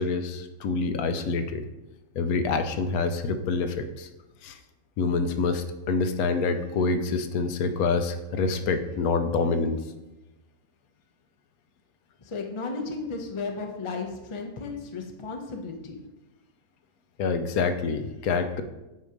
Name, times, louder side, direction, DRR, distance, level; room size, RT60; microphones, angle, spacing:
voice 1, 0.0-1.6 2.2-4.1 4.4-4.6 5.0-9.8 17.2-18.6, left 4 dB, 75° left, 8 dB, 1.0 m, -26 dB
voice 2, 12.2-16.0, left 4 dB, 40° left, 3 dB, 0.4 m, -34 dB
8.1 x 2.8 x 4.9 m, 1.0 s
omnidirectional pair, 1.6 m